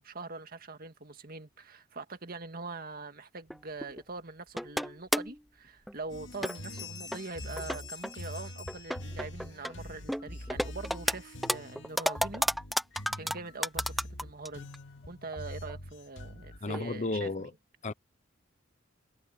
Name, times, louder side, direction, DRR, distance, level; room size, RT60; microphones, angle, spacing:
voice 1, 0.0-12.5 13.2-14.7 15.1-17.5, right 3 dB, 50° right, 1.9 m, -43 dB
sound 1, 3.5-4.0 4.6-5.4 5.9-6.0 6.4-6.8 7.1-7.2 7.6-8.2 8.7-9.7 10.1-11.2 11.4-14.5 14.7-14.8 15.3-15.4 15.7-15.8 16.7-16.9 17.3-17.4, equal, ahead, 0.7 m, -32 dB
Bell, 5.8-6.1 6.3-9.5, left 5 dB, 20° left, 4.7 m, -47 dB
sound 2, 6.1-16.6, left 1 dB, 65° left, 2.4 m, -45 dB
voice 2, 16.6-17.5 17.8-17.9, left 3 dB, 35° left, 0.8 m, -33 dB
head